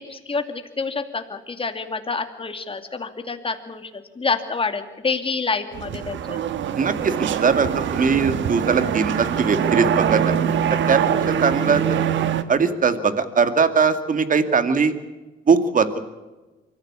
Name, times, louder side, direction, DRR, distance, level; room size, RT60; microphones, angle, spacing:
voice 1, 0.0-6.4, left 4 dB, 25° left, 7 dB, 2.5 m, -28 dB
sound 1, 5.7-12.4, right 8 dB, 70° right, 1.4 m, -23 dB
voice 2, 6.8-10.4 10.7-11.0 11.3-11.8 12.5-14.9 15.5-16.0, right 5 dB, 40° right, 10 dB, 2.1 m, -20 dB
24.0 x 14.5 x 8.5 m, 1.2 s
cardioid pair, 90°, 20 cm